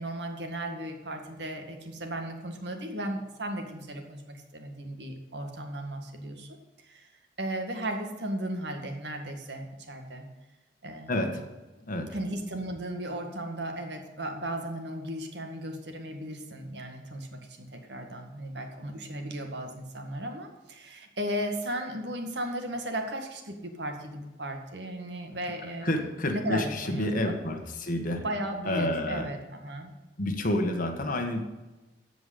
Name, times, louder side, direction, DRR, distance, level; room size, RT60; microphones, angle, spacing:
voice 1, 0.0-6.6 6.8-7.1 7.4-10.3 10.8-11.3 12.1-27.4 28.1-29.9, right 1 dB, 70° right, 4 dB, 2.0 m, -36 dB
voice 2, 11.1-11.4 11.9-12.1 25.8-28.2 28.6-29.3 30.2-31.4, left 1 dB, 50° left, 4 dB, 1.7 m, -29 dB
14.0 x 5.3 x 8.5 m, 1.1 s
head